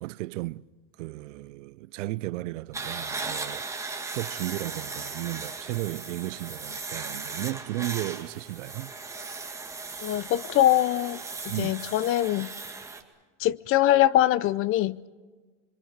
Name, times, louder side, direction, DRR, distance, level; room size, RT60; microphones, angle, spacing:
voice 1, 0.0-0.7 1.0-3.6 4.1-8.9 11.5-11.8, right 18 dB, 90° right, 0.7 m, -34 dB
sound 1, 2.7-13.0, right 3 dB, 10° right, 2.1 m, -37 dB
voice 2, 10.0-11.2 11.6-12.5 13.4-15.1, left 13 dB, 35° left, 0.6 m, -23 dB
26.5 x 23.5 x 6.5 m
supercardioid pair, 135°, 36 cm